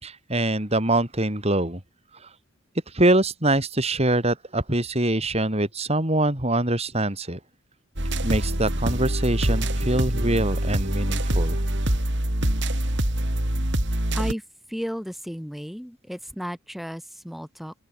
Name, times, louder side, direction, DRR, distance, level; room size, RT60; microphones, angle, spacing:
voice 1, 0.0-1.8 2.1-2.3 2.9-7.4 8.2-11.6, right 1 dB, 30° right, 3.9 m, -24 dB
sound 1, 8.0-14.3, right 1 dB, 55° right, 4.3 m, -24 dB
voice 2, 14.7-17.7, equal, ahead, 5.3 m, -33 dB
open air
head